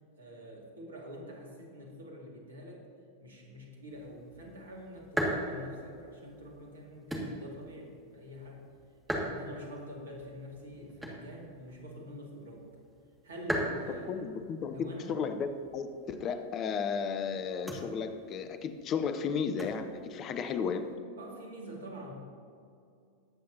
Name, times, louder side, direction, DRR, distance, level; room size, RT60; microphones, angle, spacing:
voice 1, 0.2-2.9 3.2-8.7 9.1-12.7 13.2-14.1 14.7-15.2 21.2-22.1, equal, 70° right, 0 dB, 2.2 m, -46 dB
sound 1, 3.9-21.0, equal, 5° right, 2.0 m, -41 dB
voice 2, 14.1-15.5 15.7-20.9, left 6 dB, 30° left, 9 dB, 0.7 m, -34 dB
20.5 x 8.5 x 2.8 m, 2.4 s
figure-of-eight pair, 90°, 0 cm